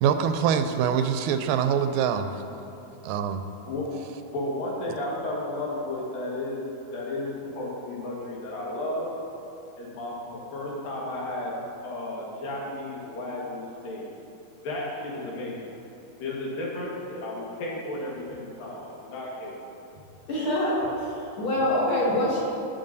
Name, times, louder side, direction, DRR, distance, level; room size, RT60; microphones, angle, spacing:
voice 1, 0.0-2.3 3.0-3.4, right 8 dB, 85° right, 8 dB, 2.2 m, -24 dB
voice 2, 3.6-9.1 9.8-11.5 11.8-14.1 14.6-15.7 16.2-19.6, left 1 dB, 90° left, -4 dB, 3.4 m, -33 dB
voice 3, 20.3-22.4, left 1 dB, 40° left, -7 dB, 2.6 m, -25 dB
18.0 x 6.9 x 2.7 m, 2.8 s
omnidirectional pair, 3.9 m